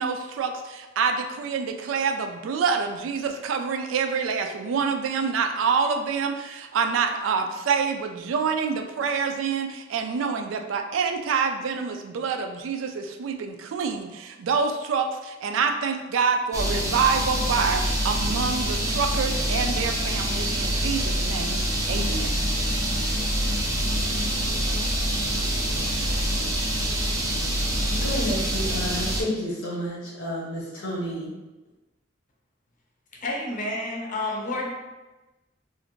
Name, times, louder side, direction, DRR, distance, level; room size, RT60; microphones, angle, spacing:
voice 1, 0.0-21.6 21.9-22.4, right 5 dB, 80° right, 5 dB, 0.3 m, -26 dB
sound 1, 16.5-29.2, right 1 dB, 15° right, 0.4 m, -26 dB
voice 2, 27.9-31.3, equal, 85° left, -6 dB, 0.7 m, -30 dB
voice 3, 33.2-34.7, left 2 dB, 40° left, -2 dB, 0.6 m, -29 dB
2.4 x 2.4 x 3.0 m, 1.1 s
head